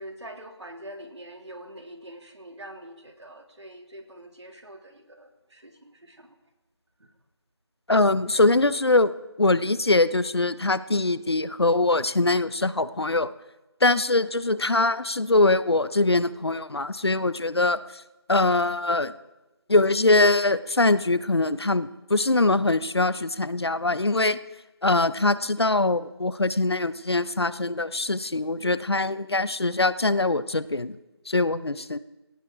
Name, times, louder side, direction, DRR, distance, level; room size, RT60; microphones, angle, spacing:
voice 1, 0.0-6.3 7.0-7.1, right 1 dB, 90° right, 4 dB, 2.8 m, -44 dB
voice 2, 7.9-9.1 9.4-13.3 13.8-17.8 18.3-19.1 19.7-24.4 24.8-31.0 31.3-32.0, left 2 dB, 70° left, 16 dB, 0.8 m, -22 dB
20.0 x 17.5 x 3.7 m, 1.0 s
figure-of-eight pair, 180°, 14 cm